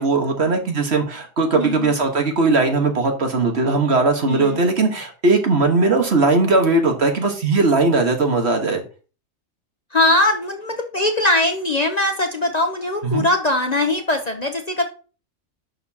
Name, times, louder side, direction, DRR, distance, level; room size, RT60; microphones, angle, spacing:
voice 1, 0.0-8.8 13.0-13.3, right 3 dB, 55° right, 4 dB, 1.7 m, -19 dB
voice 2, 1.5-1.9 4.2-4.7 9.9-14.8, left 2 dB, 35° left, 5 dB, 0.8 m, -21 dB
11.0 x 6.8 x 2.9 m, 0.37 s
omnidirectional pair, 1.4 m